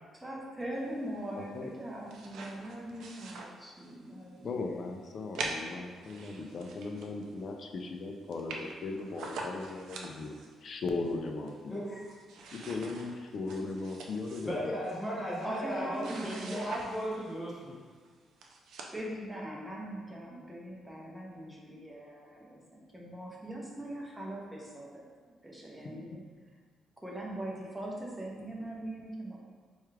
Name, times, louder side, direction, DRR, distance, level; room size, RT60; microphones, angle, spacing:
voice 1, 0.1-4.5 15.4-16.7 18.9-26.2 27.0-29.4, right 1 dB, 10° right, -3 dB, 0.6 m, -41 dB
voice 2, 1.4-1.7 4.4-10.4 10.6-11.8 12.5-14.7 25.8-26.1, left 3 dB, 45° left, 3 dB, 0.3 m, -38 dB
sound 1, 1.8-4.1 4.5-4.6 5.4-7.4 7.8-7.9 8.1-8.2 8.3-10.5 11.0-11.8 12.0-17.4 18.0-18.1 18.4-19.0, right 3 dB, 80° right, 0.4 m, -44 dB
voice 3, 11.7-12.1 14.4-17.7, equal, 10° left, -7 dB, 1.0 m, -36 dB
4.5 x 2.3 x 3.1 m, 1.5 s
cardioid pair, 150°, 0 cm